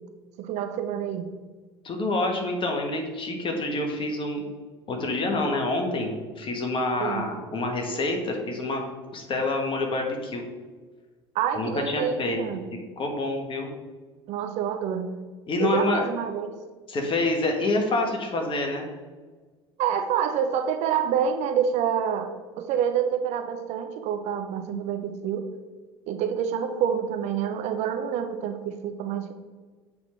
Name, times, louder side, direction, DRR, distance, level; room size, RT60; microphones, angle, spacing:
voice 1, 0.4-1.3 7.0-7.3 11.3-12.6 14.3-15.1 15.6-16.6 19.8-25.5 26.1-29.3, right 8 dB, 50° right, 8 dB, 0.6 m, -27 dB
voice 2, 1.8-4.4 4.9-8.8 9.1-10.4 11.5-12.4 13.0-13.7 15.5-16.0 16.9-18.9, left 2 dB, 35° left, 2 dB, 1.6 m, -27 dB
7.9 x 3.8 x 4.4 m, 1.4 s
figure-of-eight pair, 65°, 14 cm